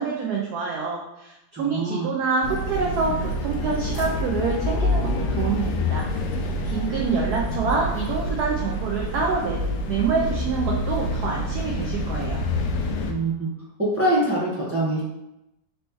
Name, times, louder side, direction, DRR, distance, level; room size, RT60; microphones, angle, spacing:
voice 1, 0.0-6.1 6.6-9.6 9.9-12.4, right 4 dB, 70° right, -2 dB, 1.0 m, -26 dB
voice 2, 1.6-2.1 13.1-13.5 13.8-15.0, right 1 dB, 15° right, -7 dB, 0.4 m, -24 dB
sound 1, 2.4-13.1, left 1 dB, 75° left, 1.0 m, -27 dB
4.0 x 3.0 x 3.4 m, 0.90 s
omnidirectional pair, 2.1 m